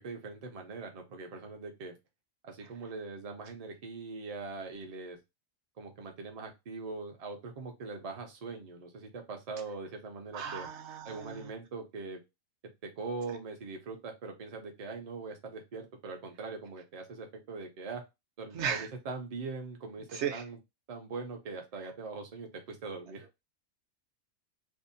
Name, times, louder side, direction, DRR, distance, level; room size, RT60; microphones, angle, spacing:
voice 1, 0.0-1.9 2.4-5.2 5.8-10.7 11.0-12.2 12.8-18.0 18.4-20.6 20.9-23.4, right 3 dB, 45° right, 3 dB, 0.5 m, -42 dB
voice 2, 10.3-11.5 18.5-18.9 20.1-20.4, right 7 dB, 65° right, 5 dB, 0.8 m, -35 dB
2.6 x 2.0 x 2.6 m, 0.23 s
omnidirectional pair, 1.4 m